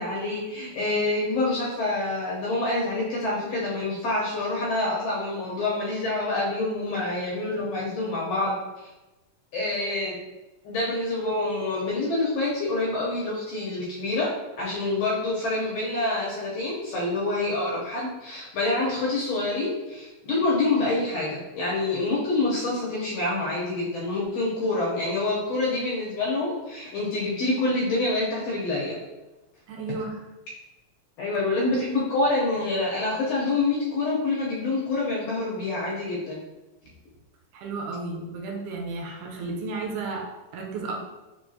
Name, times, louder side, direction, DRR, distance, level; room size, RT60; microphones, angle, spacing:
voice 1, 0.0-8.5 9.5-10.2 10.6-14.3 14.6-29.0 31.2-36.4, left 2 dB, 70° left, -5 dB, 1.6 m, -27 dB
voice 2, 29.7-30.2 37.5-41.0, right 3 dB, 80° right, 1 dB, 2.1 m, -33 dB
4.7 x 3.4 x 2.7 m, 1.1 s
omnidirectional pair, 3.6 m